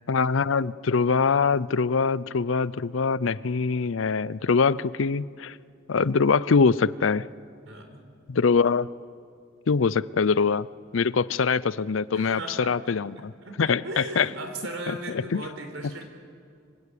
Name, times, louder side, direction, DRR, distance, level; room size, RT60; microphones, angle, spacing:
voice 1, 0.1-5.5 5.9-7.3 8.3-8.9 9.7-10.7 10.9-13.3 13.6-14.3 14.9-15.0 15.3-15.4, left 5 dB, 70° left, 19 dB, 0.5 m, -23 dB
voice 2, 7.7-8.0 12.1-12.8 13.4-16.0, right 1 dB, 85° right, 5 dB, 4.3 m, -37 dB
25.5 x 24.0 x 8.4 m, 2.3 s
head